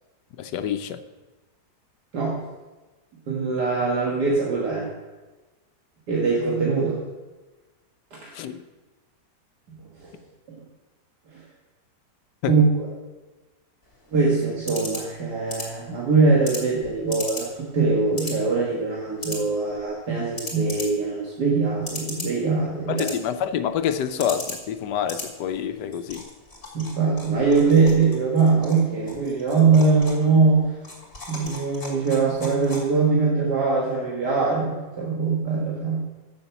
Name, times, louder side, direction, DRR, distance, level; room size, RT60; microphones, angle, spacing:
voice 1, 0.4-1.0 8.3-8.6 12.4-12.5 22.9-26.2, left 9 dB, 85° left, 1.3 m, -27 dB
voice 2, 2.1-2.5 3.3-4.9 6.1-7.0 8.1-8.4 10.0-10.1 10.5-10.6 11.3-11.4 12.5-12.6 14.1-23.1 26.7-30.7 31.3-36.0, right 4 dB, 75° right, 2.1 m, -22 dB
sound 1, 13.8-33.2, left 2 dB, 35° left, 2.8 m, -39 dB
7.6 x 7.0 x 7.1 m
omnidirectional pair, 1.8 m